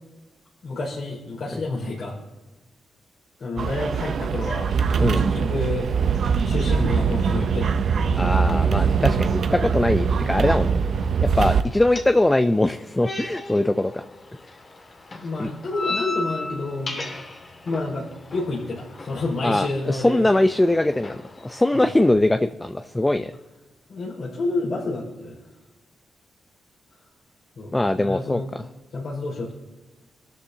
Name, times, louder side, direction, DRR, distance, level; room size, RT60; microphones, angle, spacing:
voice 1, 0.6-2.2 3.4-6.0 6.4-7.8 15.2-17.0 17.6-20.2 21.7-21.9 23.9-25.4 27.6-28.5 28.9-29.5, left 2 dB, 65° left, -6 dB, 5.0 m, -29 dB
sound 1, 3.6-11.6, right 6 dB, 65° right, 0.6 m, -22 dB
voice 2, 8.2-10.8 11.2-13.9 15.4-15.5 19.4-23.3 27.7-28.7, left 1 dB, 15° left, 8 dB, 0.5 m, -22 dB
sound 2, 10.7-22.1, left 2 dB, 40° left, 2.1 m, -37 dB
23.0 x 13.0 x 2.8 m, 1.1 s
cardioid pair, 70°, 0 cm